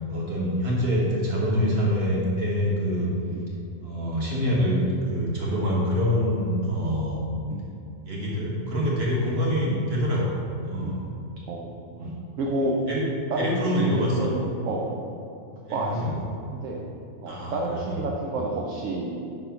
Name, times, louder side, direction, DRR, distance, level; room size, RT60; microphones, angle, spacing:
voice 1, 0.1-3.1 3.8-7.2 8.0-11.0 12.0-12.1 12.9-13.0 13.4-14.3 15.7-16.2 17.3-18.0, equal, 45° right, -4 dB, 1.5 m, -25 dB
voice 2, 11.5-12.1 12.4-12.7 13.3-14.4 14.6-14.9 15.7-16.1 16.5-16.8 17.2-19.3, right 2 dB, 70° right, -2 dB, 1.0 m, -30 dB
5.2 x 4.1 x 5.7 m, 2.6 s
omnidirectional pair, 1.5 m